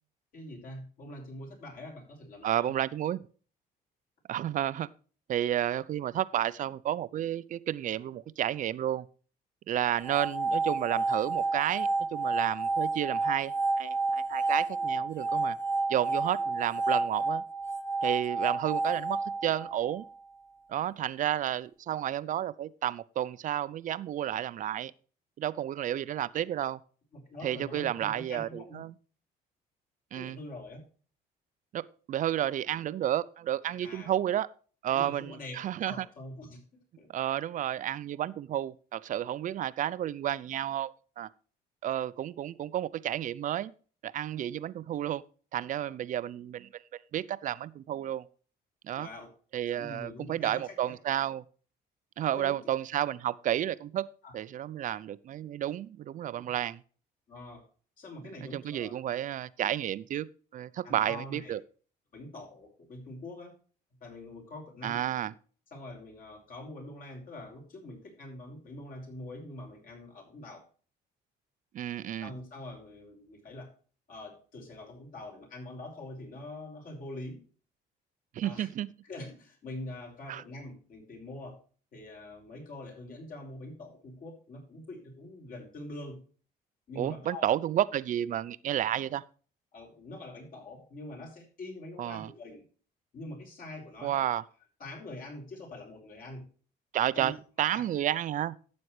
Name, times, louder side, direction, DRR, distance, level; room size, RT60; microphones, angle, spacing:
voice 1, 0.3-2.8 15.3-15.4 17.2-17.3 27.1-28.8 30.1-30.8 33.6-34.1 34.9-35.5 35.8-37.1 45.8-45.9 48.9-49.3 49.7-50.9 52.3-52.7 54.2-54.4 56.4-56.6 57.3-57.6 58.0-58.9 60.8-61.5 62.1-63.5 64.0-65.0 65.7-70.6 72.2-73.7 74.1-77.5 78.4-78.7 79.0-81.6 81.9-86.2 86.9-87.5 89.7-92.6 93.1-94.2 94.8-96.5 97.1-97.3 97.7-97.8, left 1 dB, 55° left, 5.5 m, -44 dB
voice 2, 2.4-3.3 4.3-4.9 5.3-9.1 9.7-15.6 15.9-17.4 18.0-20.1 20.7-24.9 25.4-26.8 27.4-28.9 30.1-30.4 31.7-34.5 34.8-36.1 37.1-41.3 41.8-43.7 44.0-45.2 45.5-46.8 47.1-48.3 48.8-49.1 49.5-51.4 52.2-54.1 54.3-56.8 58.4-60.3 60.5-61.6 64.8-65.3 71.7-72.3 78.3-78.9 80.3-80.4 87.0-89.2 92.0-92.3 94.0-94.4 96.9-98.6, right 11 dB, 50° right, 0.5 m, -31 dB
sound 1, 10.0-20.2, right 3 dB, 15° left, 1.1 m, -30 dB
12.5 x 8.5 x 3.2 m
cardioid pair, 110°, 17 cm